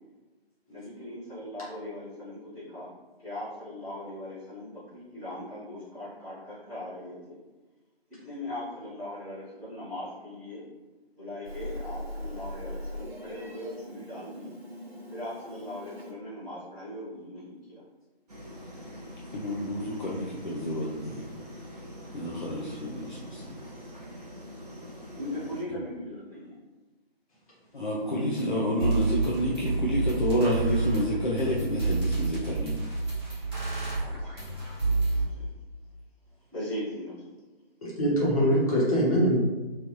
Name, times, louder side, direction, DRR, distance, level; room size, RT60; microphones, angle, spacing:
voice 1, 0.7-2.9 3.2-7.4 8.2-10.6 11.2-14.5 15.1-17.8 25.1-26.5 34.0-34.6 36.5-37.1, left 1 dB, ahead, -27 dB, 0.8 m, -39 dB
Meow, 11.4-16.1, left 1 dB, 80° right, 1.1 m, -40 dB
sound 1, 18.3-25.6, equal, 40° right, 0.8 m, -44 dB
voice 2, 19.3-21.2 22.1-23.6 27.7-32.8 33.6-34.0, equal, 50° left, -4 dB, 0.6 m, -29 dB
sound 2, 28.4-28.5 28.8-35.2, right 3 dB, 25° right, 1.1 m, -29 dB
voice 3, 37.8-39.4, equal, 35° left, -8 dB, 1.5 m, -23 dB
3.1 x 3.1 x 2.6 m, 1.2 s
figure-of-eight pair, 155°, 31 cm